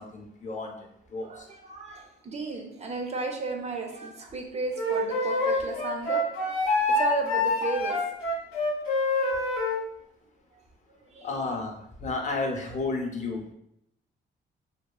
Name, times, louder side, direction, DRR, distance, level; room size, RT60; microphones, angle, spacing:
voice 1, 0.0-1.5 11.2-13.5, left 3 dB, 40° left, 1 dB, 0.5 m, -32 dB
voice 2, 1.2-8.1 9.6-9.7 10.5-10.6 11.1-11.6, right 3 dB, 35° right, 2 dB, 0.4 m, -34 dB
Wind instrument woodwind instrument, 4.8-9.8, left 2 dB, 90° left, 0.6 m, -26 dB
2.7 x 2.2 x 2.3 m, 0.76 s
cardioid pair, 90°, 20 cm